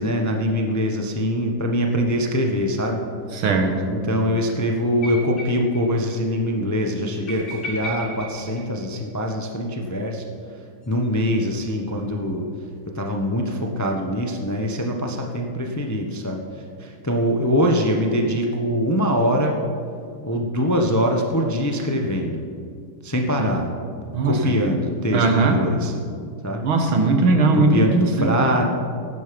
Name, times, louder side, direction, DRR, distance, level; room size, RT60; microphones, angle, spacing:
voice 1, 0.0-3.0 3.9-10.2 10.9-12.5 12.9-16.4 16.8-19.5 20.2-22.4 23.0-23.7 24.2-25.9 26.4-26.6 27.5-28.6, equal, 15° left, 2 dB, 0.6 m, -23 dB
voice 2, 3.3-3.9 23.4-23.5 24.1-24.5 25.1-25.6 26.6-28.4, right 3 dB, 85° right, 4 dB, 2.2 m, -19 dB
sound 1, 5.0-5.8 6.1-6.2 6.5-6.6 7.3-9.3 10.8-12.1, equal, 45° left, 3.9 m, -36 dB
16.0 x 11.0 x 5.3 m, 2.3 s
omnidirectional pair, 2.2 m